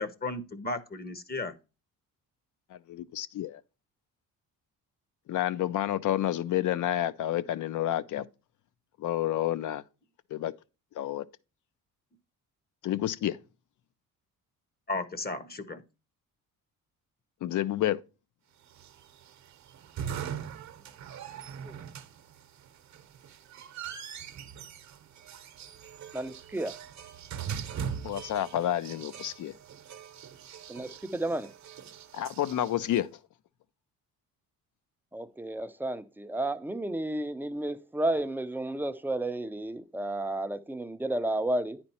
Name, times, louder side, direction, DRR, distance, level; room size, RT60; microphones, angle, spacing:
voice 1, 0.0-1.5 14.9-15.8, left 3 dB, 25° left, 0.8 m, -34 dB
voice 2, 2.7-3.6 5.3-8.3 9.0-9.8 10.3-10.5 10.9-11.2 12.8-13.4 17.4-18.0 28.0-29.5 32.1-33.1, left 12 dB, 60° left, 0.6 m, -29 dB
sound 1, 18.7-33.0, right 8 dB, 50° right, 0.8 m, -41 dB
voice 3, 26.1-26.7 30.7-31.5 35.1-41.8, right 1 dB, 5° right, 0.5 m, -32 dB
9.7 x 4.4 x 4.2 m
cardioid pair, 100°, 35 cm